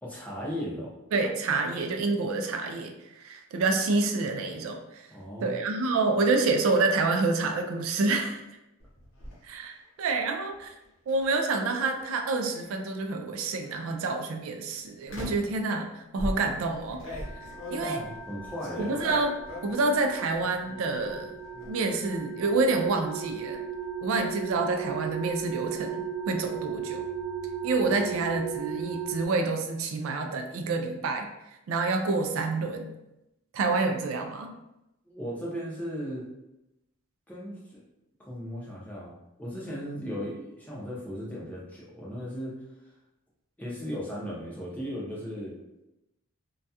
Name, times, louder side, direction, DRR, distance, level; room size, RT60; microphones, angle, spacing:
voice 1, 0.0-0.9 5.1-5.6 17.8-19.0 35.1-36.2 37.3-37.8 38.2-42.5 43.6-45.6, equal, 5° left, -5 dB, 0.5 m, -36 dB
voice 2, 1.1-5.0 5.4-8.4 9.4-10.7 11.1-17.0 17.7-18.0 18.8-19.3 19.6-21.3 21.7-23.6 24.0-27.0 27.6-31.3 31.7-32.9 33.5-34.5, right 3 dB, 70° right, 5 dB, 0.3 m, -28 dB
sound 1, 8.8-9.4 11.1-11.3 12.1-12.9 13.7-14.0 15.1-15.6 16.2-19.9 20.3-20.8 21.1-21.7, left 1 dB, 60° left, 0.8 m, -39 dB
sound 2, 17.2-29.3, right 7 dB, 85° right, 0.7 m, -36 dB
2.2 x 2.2 x 2.7 m, 0.90 s
head